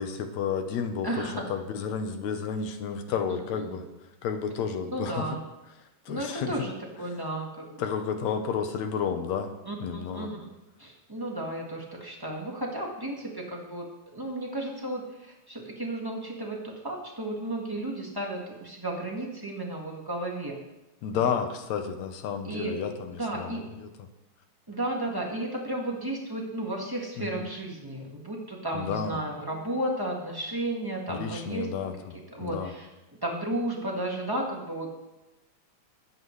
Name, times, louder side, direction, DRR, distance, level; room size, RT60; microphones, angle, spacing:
voice 1, 0.0-3.8 4.2-5.3 6.1-6.7 7.8-9.5 9.8-10.3 21.0-24.1 27.2-27.5 28.7-29.1 31.1-32.7, left 7 dB, 75° left, 7 dB, 2.0 m, -31 dB
voice 2, 1.0-1.5 3.3-3.4 3.7-3.8 4.9-5.4 6.1-7.9 9.6-10.5 10.8-13.9 14.1-20.6 21.1-21.4 22.4-22.8 23.1-23.6 24.7-31.7 32.3-32.9 33.2-34.9, right 1 dB, 25° right, -1 dB, 0.5 m, -33 dB
22.5 x 8.2 x 3.2 m, 1.0 s
omnidirectional pair, 3.5 m